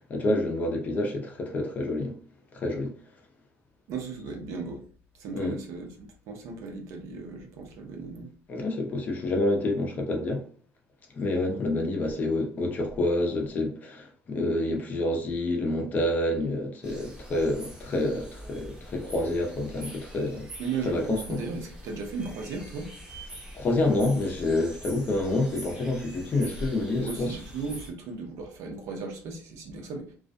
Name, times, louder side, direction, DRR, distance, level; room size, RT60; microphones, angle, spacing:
voice 1, 0.1-2.2 2.5-2.9 5.3-5.6 8.5-10.4 11.1-20.5 20.8-21.4 23.5-27.4, left 2 dB, 35° left, 0.5 m, -28 dB
voice 2, 3.9-4.8 5.2-8.3 20.6-22.9 27.0-30.1, right 4 dB, 70° right, 0.6 m, -36 dB
sound 1, 16.8-27.9, right 1 dB, 15° right, 0.7 m, -44 dB
2.3 x 2.1 x 2.5 m
cardioid pair, 150°, 5 cm